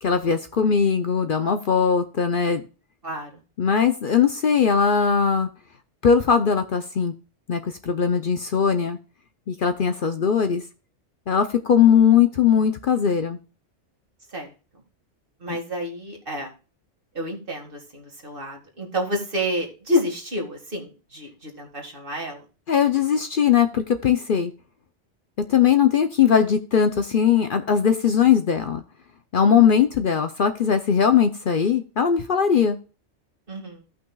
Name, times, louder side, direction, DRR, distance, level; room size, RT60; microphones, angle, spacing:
voice 1, 0.0-2.6 3.6-5.5 6.0-7.1 7.5-9.0 9.5-10.6 11.3-13.4 15.5-15.6 22.7-24.5 25.5-28.8 29.3-32.8, left 7 dB, 55° left, 8 dB, 0.8 m, -20 dB
voice 2, 15.4-16.5 17.2-22.4 33.5-33.8, left 1 dB, 50° right, 1 dB, 2.2 m, -29 dB
16.5 x 5.8 x 2.3 m, 0.35 s
omnidirectional pair, 1.2 m